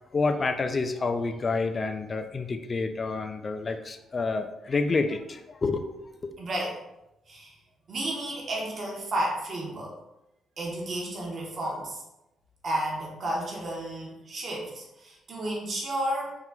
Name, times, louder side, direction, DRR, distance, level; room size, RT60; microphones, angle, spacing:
voice 1, 0.1-6.3, left 3 dB, 35° left, 8 dB, 0.4 m, -29 dB
voice 2, 6.4-6.8 7.3-7.5 7.9-9.9 10.6-12.0 12.6-16.3, right 1 dB, 45° right, -3 dB, 1.1 m, -32 dB
4.4 x 3.8 x 2.3 m, 0.92 s
cardioid pair, 90°, 0 cm